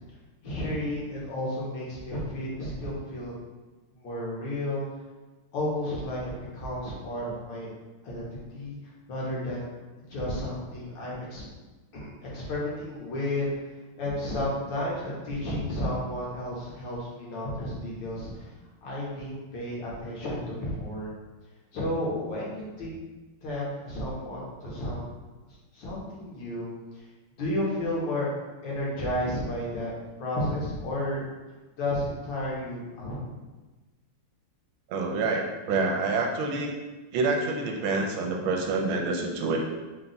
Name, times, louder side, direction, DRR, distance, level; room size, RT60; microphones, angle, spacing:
voice 1, 0.4-3.4 4.0-4.9 5.5-7.7 8.0-9.7 10.1-11.4 11.9-13.5 14.0-18.5 18.8-21.1 21.7-22.9 23.4-25.0 25.5-26.7 26.9-27.1 27.4-28.3 28.6-31.2 31.8-33.2, left 1 dB, 65° left, -5 dB, 1.6 m, -32 dB
voice 2, 34.9-36.7 37.1-39.6, right 3 dB, 80° right, 1 dB, 1.4 m, -27 dB
4.0 x 2.3 x 3.9 m, 1.2 s
omnidirectional pair, 2.3 m